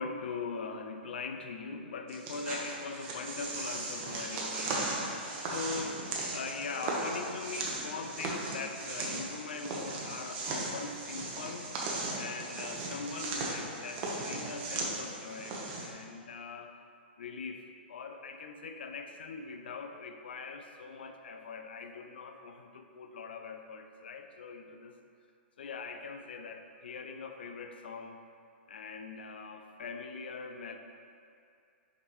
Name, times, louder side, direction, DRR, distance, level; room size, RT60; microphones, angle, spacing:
voice 1, 0.0-6.1 6.3-11.8 12.2-16.7 17.2-25.0 25.6-28.2 28.7-30.8, left 4 dB, 70° left, 5 dB, 0.5 m, -42 dB
sound 1, 2.1-15.9, right 2 dB, 40° right, 1.1 m, -37 dB
6.1 x 5.2 x 3.1 m, 2.4 s
figure-of-eight pair, 115°, 6 cm